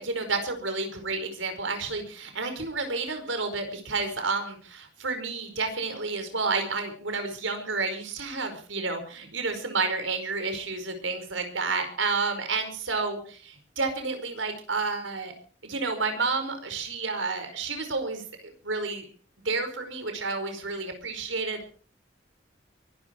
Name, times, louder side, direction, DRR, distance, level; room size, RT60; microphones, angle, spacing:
voice 1, 0.0-15.3 15.6-19.1 19.4-21.7, right 3 dB, 90° right, 7 dB, 5.0 m, -30 dB
23.5 x 12.5 x 4.6 m, 0.41 s
head